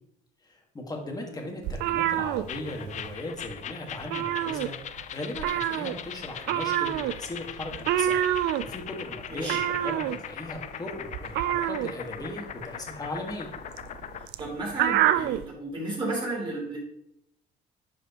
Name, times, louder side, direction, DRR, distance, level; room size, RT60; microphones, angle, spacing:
voice 1, 0.4-4.8 5.1-8.2 8.6-13.5, left 2 dB, 20° left, 2 dB, 1.7 m, -38 dB
sound 1, 1.6-3.2 3.4-3.7 3.9-5.0 5.4-15.5, right 12 dB, 80° right, 0.4 m, -27 dB
sound 2, 2.5-14.3, left 9 dB, 45° left, 0.4 m, -40 dB
voice 2, 9.3-9.6 14.4-16.8, right 2 dB, 30° right, -5 dB, 3.1 m, -33 dB
10.5 x 4.9 x 3.0 m, 0.75 s
cardioid pair, 110°, 17 cm